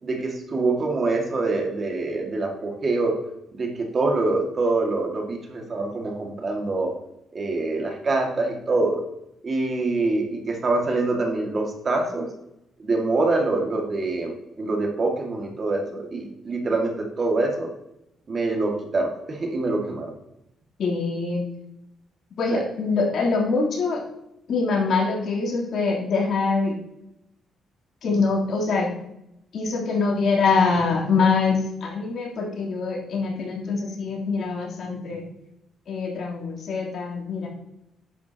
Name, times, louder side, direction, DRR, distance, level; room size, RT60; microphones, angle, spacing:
voice 1, 0.0-3.1 3.5-6.9 7.3-9.0 9.4-12.3 12.8-17.7 18.3-20.1 22.5-22.6, right 3 dB, 40° right, 2 dB, 2.2 m, -25 dB
voice 2, 20.8-21.4 22.4-24.0 24.5-26.8 28.0-28.9 29.5-35.3 35.9-37.5, left 4 dB, 60° left, -3 dB, 3.4 m, -24 dB
10.5 x 8.4 x 3.0 m, 0.84 s
cardioid pair, 90°, 0 cm